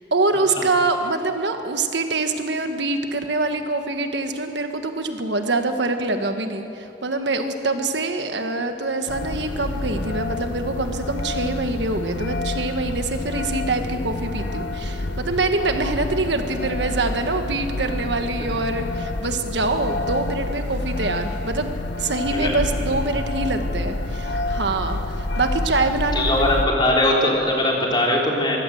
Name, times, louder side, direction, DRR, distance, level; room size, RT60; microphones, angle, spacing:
voice 1, 0.1-21.7 22.0-26.5, right 2 dB, 75° right, 6 dB, 1.5 m, -25 dB
sound 1, 9.1-26.7, left 2 dB, 75° left, 0.9 m, -28 dB
voice 2, 26.1-28.6, left 1 dB, 25° left, -2 dB, 3.7 m, -20 dB
23.5 x 16.0 x 7.8 m, 2.8 s
head